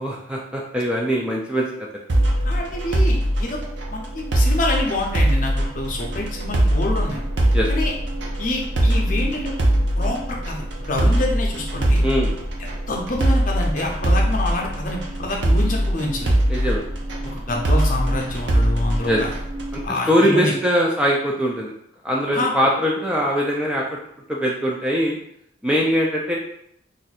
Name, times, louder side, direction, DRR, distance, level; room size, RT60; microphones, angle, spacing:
voice 1, 0.0-1.9 7.5-7.7 12.0-12.3 16.5-16.8 19.1-19.2 19.7-19.8 20.1-21.7 22.0-23.8 24.3-25.2 25.6-26.4, equal, 5° right, -3 dB, 0.3 m, -21 dB
sound 1, 2.1-19.8, right 1 dB, 70° right, 0.6 m, -21 dB
voice 2, 2.4-3.6 3.9-7.2 7.7-7.9 8.4-9.5 10.0-12.0 12.9-16.3 17.2-19.3 19.8-20.5 22.3-22.5, left 2 dB, 45° left, 0 dB, 0.6 m, -27 dB
2.6 x 2.4 x 4.1 m, 0.72 s
head